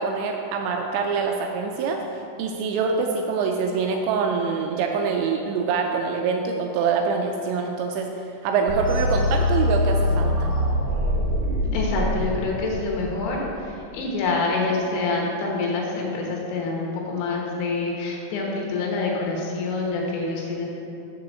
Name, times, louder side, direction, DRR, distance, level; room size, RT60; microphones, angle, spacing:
voice 1, 0.0-2.0 2.4-10.5, right 5 dB, 85° right, 3 dB, 2.7 m, -25 dB
sound 1, 8.7-13.6, left 1 dB, 55° right, 2.0 m, -24 dB
voice 2, 11.7-20.7, left 3 dB, 75° left, -1 dB, 3.4 m, -26 dB
7.0 x 5.7 x 6.5 m, 2.7 s
omnidirectional pair, 5.4 m